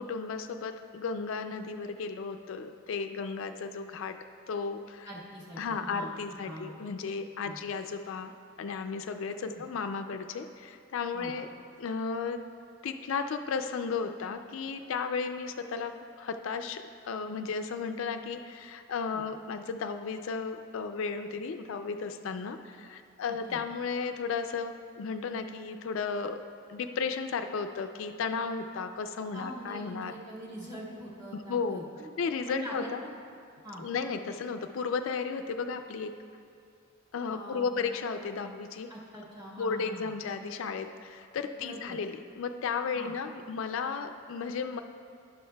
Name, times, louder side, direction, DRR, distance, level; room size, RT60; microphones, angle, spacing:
voice 1, 0.0-4.2 4.5-5.1 5.6-8.3 8.6-11.5 11.8-12.4 12.8-26.4 26.7-30.1 31.3-31.8 32.2-33.0 33.8-36.1 37.1-38.9 39.6-44.8, left 5 dB, 65° left, 7 dB, 0.4 m, -34 dB
voice 2, 5.0-6.7 7.4-7.6 9.4-9.6 11.1-11.3 19.1-19.2 23.5-23.6 29.3-32.1 32.5-33.1 33.6-33.8 37.3-37.7 38.9-40.1 41.4-42.0 42.9-43.1, equal, 20° right, -6 dB, 1.6 m, -43 dB
12.0 x 10.5 x 2.2 m, 2.4 s
head